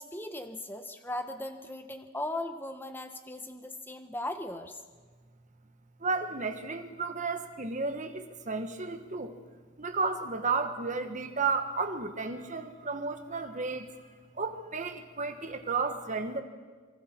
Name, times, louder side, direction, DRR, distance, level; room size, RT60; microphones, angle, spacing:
voice 1, 0.0-4.8, left 1 dB, 10° left, 7 dB, 1.2 m, -38 dB
voice 2, 6.0-9.4 9.8-13.9 14.3-16.4, right 4 dB, 35° right, 7 dB, 1.5 m, -33 dB
26.5 x 24.0 x 4.6 m, 1.5 s
head